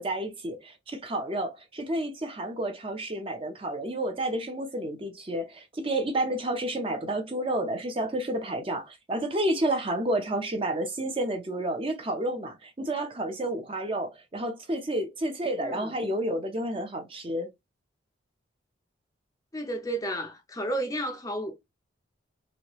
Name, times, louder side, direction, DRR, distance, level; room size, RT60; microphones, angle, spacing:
voice 1, 0.0-17.5, right 1 dB, 25° right, 0.6 m, -30 dB
voice 2, 15.6-15.9 19.5-21.5, right 1 dB, 15° left, 0.5 m, -32 dB
3.1 x 2.6 x 2.9 m
head